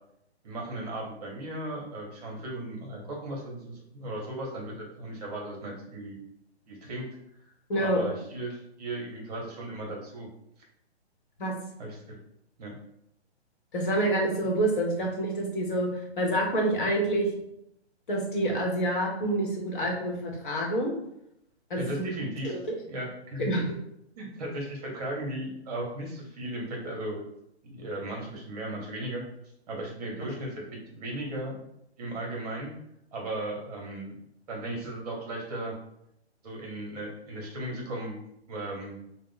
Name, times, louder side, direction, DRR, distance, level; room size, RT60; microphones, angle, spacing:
voice 1, 0.4-6.2 6.7-7.1 7.8-10.3 11.8-12.2 12.6-12.7 21.8-22.6 22.8-23.7 24.2-27.2 27.6-29.2 29.7-31.6 32.0-32.7 33.1-34.1 34.5-35.7 36.4-38.2 38.5-39.0, right 1 dB, 35° right, -1 dB, 0.8 m, -36 dB
voice 2, 7.7-8.0 11.4-11.5 13.7-15.9 16.2-17.3 18.1-20.9 21.7-22.0 22.4-22.8 23.4-23.6, right 1 dB, 50° left, -1 dB, 1.0 m, -27 dB
2.9 x 2.0 x 3.8 m, 0.78 s
hypercardioid pair, 140°, 33 cm